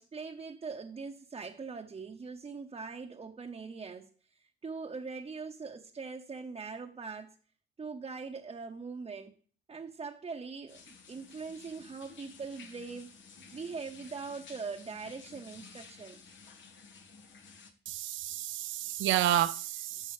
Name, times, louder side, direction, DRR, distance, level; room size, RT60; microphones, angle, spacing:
voice 1, 0.0-7.3 7.8-9.3 9.7-13.1 13.5-16.2, right 4 dB, 30° right, 0.9 m, -42 dB
sound 1, 10.7-17.7, left 5 dB, 70° left, 1.3 m, -53 dB
voice 2, 17.9-20.1, right 12 dB, 80° right, 0.5 m, -30 dB
12.5 x 5.4 x 3.2 m
cardioid pair, 90°, 20 cm